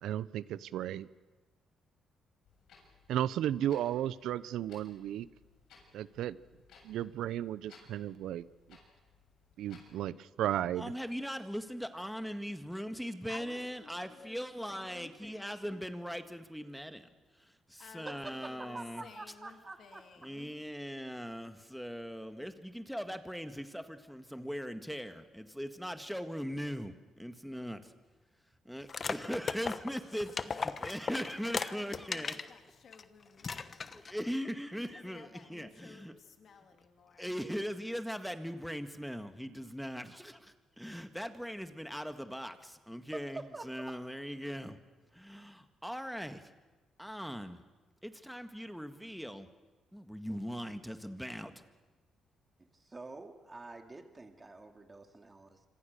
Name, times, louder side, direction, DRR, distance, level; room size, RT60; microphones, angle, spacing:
voice 1, 0.0-1.1 3.1-5.3 5.9-6.4 6.8-8.5 9.6-10.9, right 11 dB, 80° right, 18 dB, 0.7 m, -34 dB
Clock, 2.4-10.0, left 5 dB, 75° left, 7.7 m, -62 dB
voice 2, 10.8-19.1 20.2-27.9 28.7-32.5 33.4-36.1 37.2-44.8 45.1-46.5 47.0-47.6 48.0-49.5 49.9-51.5, equal, ahead, 8 dB, 1.8 m, -40 dB
voice 3, 13.3-14.4 14.7-15.8 17.8-18.2 18.5-20.6 30.0-30.5 31.7-33.9 34.9-37.3, left 6 dB, 60° left, 5 dB, 3.0 m, -55 dB
voice 4, 18.1-20.0 43.3-43.9 52.7-55.7, right 3 dB, 25° right, 5 dB, 2.5 m, -47 dB
sound 1, 28.9-32.5 32.9-33.0 33.4-34.2, left 5 dB, 40° left, 1.1 m, -37 dB
26.5 x 25.5 x 6.8 m, 1.2 s
cardioid pair, 90°, 0 cm